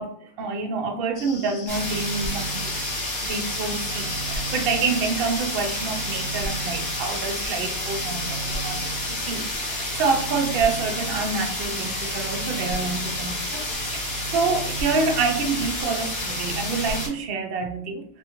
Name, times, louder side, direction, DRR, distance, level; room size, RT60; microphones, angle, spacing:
voice 1, 0.0-2.6 3.2-8.9 9.2-13.6 13.9-18.0, right 4 dB, 60° right, 3 dB, 0.7 m, -27 dB
sound 1, 1.2-9.3, left 4 dB, 70° left, 0.9 m, -40 dB
sound 2, 1.7-17.1, equal, 40° left, 1.1 m, -29 dB
2.7 x 2.4 x 2.9 m, 0.62 s
omnidirectional pair, 1.4 m